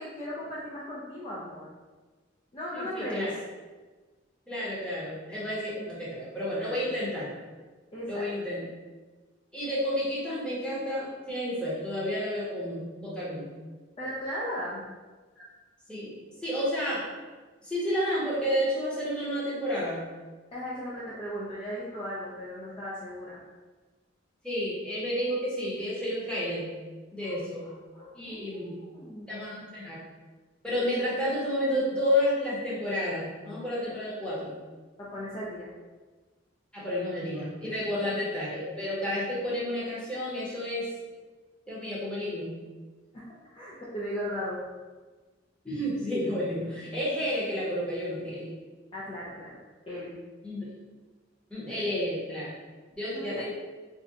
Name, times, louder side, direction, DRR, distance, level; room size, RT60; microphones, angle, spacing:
voice 1, 0.0-1.7 2.5-3.4 6.7-6.8 7.9-8.5 14.0-14.8 20.5-23.4 27.2-29.5 35.0-35.7 43.1-43.2 43.5-44.6 48.9-49.6 49.9-50.1 51.7-51.9 53.1-53.4, equal, 30° left, -7 dB, 0.4 m, -37 dB
voice 2, 2.7-3.3 4.5-7.3 8.1-8.6 9.5-13.5 15.4-15.5 15.9-16.1 16.4-17.1 17.6-20.0 24.4-26.7 27.1-27.6 28.1-28.8 29.3-30.0 30.6-34.5 36.7-40.9 41.7-42.5 45.6-48.5 50.4-50.7 51.5-52.5 53.0-53.5, equal, 5° left, -8 dB, 0.8 m, -31 dB
2.6 x 2.2 x 3.7 m, 1.3 s
head